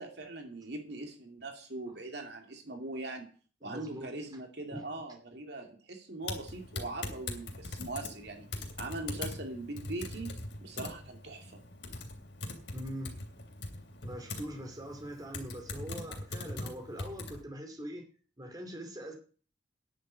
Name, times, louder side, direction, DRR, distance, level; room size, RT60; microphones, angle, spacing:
voice 1, 0.0-3.3 3.6-10.3 10.6-11.6, right 2 dB, 60° right, 3 dB, 2.5 m, -41 dB
voice 2, 3.6-4.1 4.7-4.8 12.7-13.2 14.0-18.1 18.4-19.1, equal, 20° right, 3 dB, 2.6 m, -42 dB
Typing, 6.2-17.4, left 2 dB, 65° left, 3.1 m, -42 dB
10.0 x 7.6 x 8.7 m, 0.40 s
head